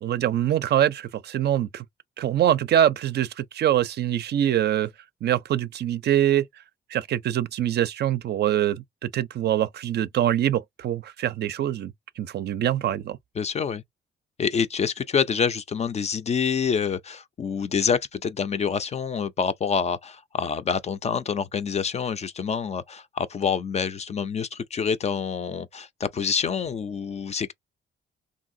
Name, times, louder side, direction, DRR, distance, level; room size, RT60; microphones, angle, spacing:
voice 1, 0.0-1.8 2.2-4.9 5.2-6.4 6.9-13.2, right 11 dB, 55° right, 0.4 m, -24 dB
voice 2, 13.4-13.8 14.4-27.5, left 6 dB, 35° left, 0.4 m, -27 dB
3.1 x 2.6 x 2.6 m
cardioid pair, 90°, 20 cm